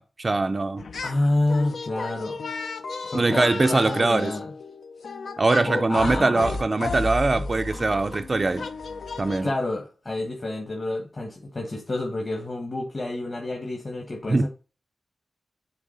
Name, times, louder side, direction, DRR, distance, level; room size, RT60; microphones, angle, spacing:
voice 1, 0.0-0.9 3.1-4.3 5.4-8.7 9.2-9.5 14.3-14.5, right 3 dB, 35° right, 0.4 m, -22 dB
sound 1, 0.8-1.2 1.5-9.5, left 3 dB, 80° left, 0.7 m, -34 dB
voice 2, 1.0-2.5 3.0-4.5 5.6-6.5 9.4-14.5, left 2 dB, 40° left, 1.5 m, -28 dB
7.3 x 3.5 x 3.9 m
wide cardioid pair, 85°, 0 cm